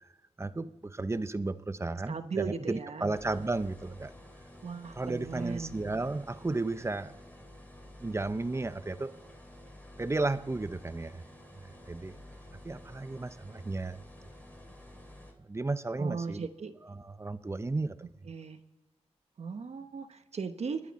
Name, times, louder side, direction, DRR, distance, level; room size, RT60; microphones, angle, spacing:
voice 1, 0.4-4.1 5.0-7.1 8.0-9.1 10.0-11.2 11.9-12.1 12.6-14.0 15.4-16.5 16.9-18.1, right 2 dB, 25° right, 12 dB, 0.7 m, -33 dB
voice 2, 2.1-3.1 4.6-5.8 16.0-16.7 18.3-18.6 19.4-20.8, right 5 dB, 70° right, 8 dB, 1.1 m, -37 dB
sound 1, 3.1-15.3, left 1 dB, 15° left, 2.8 m, -51 dB
30.0 x 11.0 x 4.2 m, 1.2 s
wide cardioid pair, 100°, 11 cm